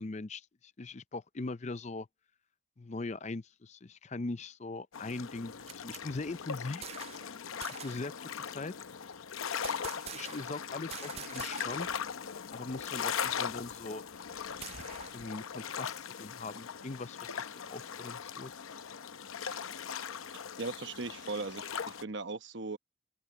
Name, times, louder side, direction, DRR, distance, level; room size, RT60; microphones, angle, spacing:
voice 1, 0.0-2.1 2.8-6.9 7.7-8.7 9.7-11.9 12.5-14.0 15.1-18.5, left 3 dB, 35° left, 0.5 m, -41 dB
sound 1, 4.9-22.0, left 7 dB, 80° left, 0.7 m, -40 dB
sound 2, 5.4-7.3 7.6-8.1 9.6-10.6 10.9-12.0 12.3-12.4 12.7-15.3, right 9 dB, 30° right, 0.4 m, -47 dB
voice 2, 20.6-22.8, right 3 dB, 55° right, 1.1 m, -38 dB
head